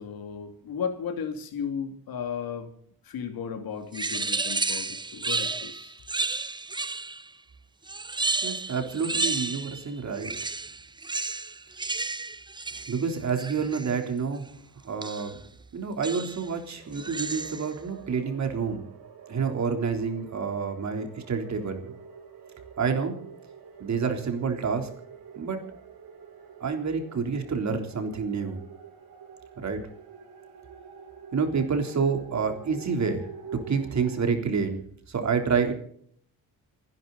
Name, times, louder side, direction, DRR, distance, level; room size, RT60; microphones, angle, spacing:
voice 1, 0.0-2.7 3.0-6.0, left 7 dB, 70° left, 7 dB, 2.8 m, -35 dB
sound 1, 3.9-7.3 7.9-9.9 10.1-14.0 15.0-15.4 16.0-16.5 16.9-17.7, right 3 dB, 10° right, 0.6 m, -32 dB
voice 2, 8.4-10.5 12.7-14.5 14.8-15.4 15.7-18.9 19.3-21.9 22.8-23.2 23.8-24.9 25.4-25.6 26.6-28.6 29.6-29.8 31.3-33.3 33.7-34.8 35.1-35.7, right 5 dB, 50° right, 5 dB, 3.7 m, -28 dB
sound 2, 16.8-34.3, right 7 dB, 75° right, 5.0 m, -47 dB
29.0 x 11.0 x 4.1 m, 0.64 s
cardioid pair, 100°, 37 cm